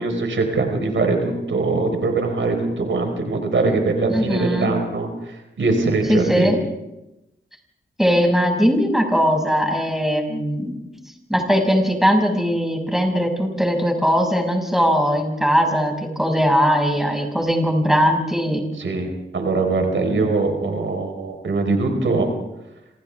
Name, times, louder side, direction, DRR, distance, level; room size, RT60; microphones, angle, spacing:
voice 1, 0.0-6.5 18.8-22.3, right 3 dB, 85° right, 3 dB, 4.5 m, -22 dB
voice 2, 4.1-4.7 6.1-6.6 8.0-10.8 11.3-18.6, equal, ahead, 2 dB, 6.2 m, -19 dB
29.0 x 27.5 x 3.6 m, 0.93 s
wide cardioid pair, 80°, 19 cm